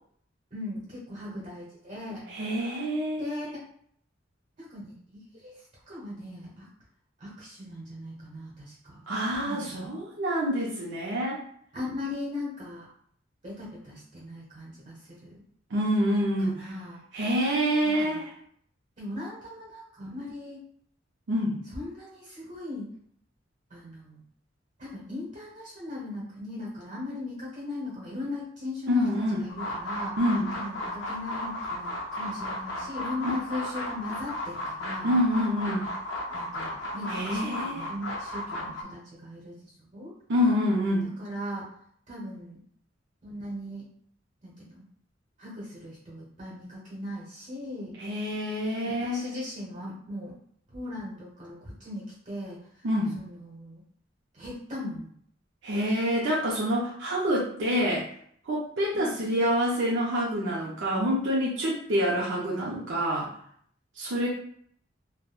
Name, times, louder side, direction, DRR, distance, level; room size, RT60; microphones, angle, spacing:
voice 1, 0.5-2.2 2.7-2.9 3.2-3.7 4.6-5.5 5.9-6.7 7.2-9.1 9.3-10.0 11.7-12.9 13.4-15.4 16.4-17.0 17.8-18.2 19.0-20.6 21.7-22.9 23.7-24.2 24.8-30.2 30.5-35.1 36.3-39.6 39.9-40.2 41.0-41.7 42.1-42.6 43.2-43.9 44.4-44.8 45.4-47.9 49.0-50.4 50.7-52.9 53.2-53.8 54.3-55.1 58.9-59.2, left 2 dB, 40° right, -5 dB, 0.9 m, -38 dB
voice 2, 2.3-3.4 9.1-11.4 15.7-16.7 17.1-18.2 21.3-21.6 28.9-29.5 30.2-30.5 33.2-33.4 35.0-35.9 37.1-37.8 40.3-41.1 48.0-49.2 52.8-53.2 55.6-58.0 58.5-63.3 64.0-64.3, equal, 70° right, -4 dB, 0.6 m, -27 dB
sound 1, 29.5-38.8, left 1 dB, 80° left, 0.5 m, -34 dB
3.4 x 2.1 x 2.3 m, 0.64 s
head